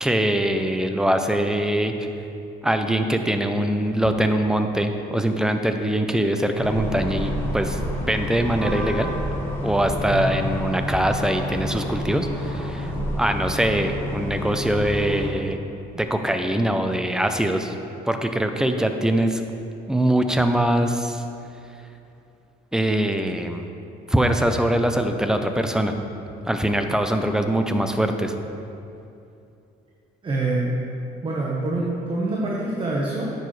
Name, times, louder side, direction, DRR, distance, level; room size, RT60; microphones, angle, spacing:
voice 1, 0.0-2.1 2.6-9.1 9.6-15.6 15.9-17.7 18.1-19.4 19.9-21.2 22.7-23.7 24.1-25.9 26.4-28.3, right 1 dB, 5° right, 6 dB, 0.5 m, -23 dB
sound 1, 6.6-15.3, left 1 dB, 10° left, 1.8 m, -29 dB
voice 2, 30.2-30.7 31.2-33.3, right 2 dB, 30° right, -4 dB, 1.1 m, -25 dB
10.0 x 6.9 x 3.3 m, 2.7 s
cardioid pair, 110°, 17 cm